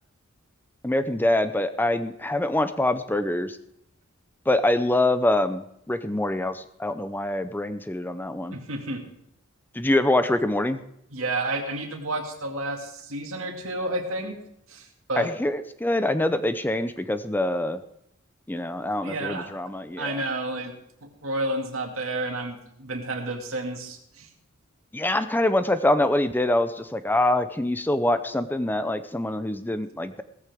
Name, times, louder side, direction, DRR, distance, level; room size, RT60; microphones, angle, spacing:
voice 1, 0.8-3.6 4.5-8.6 9.7-10.8 15.2-17.8 18.5-20.2 24.9-30.2, left 1 dB, 10° left, 11 dB, 0.5 m, -25 dB
voice 2, 8.5-9.0 11.1-14.4 14.7-15.3 19.0-19.6 20.0-20.7 21.0-24.3, right 2 dB, 85° right, 3 dB, 2.2 m, -31 dB
17.0 x 14.5 x 3.5 m, 0.75 s
head